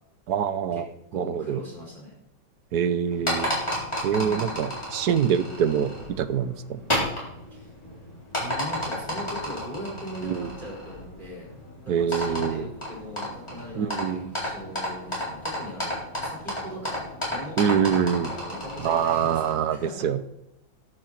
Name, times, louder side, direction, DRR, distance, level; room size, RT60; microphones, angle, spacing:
voice 1, 0.3-0.9 1.1-1.6 2.7-3.5 4.0-6.8 10.2-10.5 11.9-12.7 13.8-14.3 17.6-18.3 18.8-20.2, right 8 dB, 60° right, 12 dB, 1.2 m, -25 dB
voice 2, 1.1-2.2 4.1-4.6 7.5-7.7 8.4-11.5 11.8-20.1, equal, 20° right, -3 dB, 5.3 m, -40 dB
sound 1, 3.0-19.5, left 1 dB, 15° left, 6.2 m, -33 dB
13.0 x 12.5 x 4.5 m, 0.82 s
omnidirectional pair, 2.2 m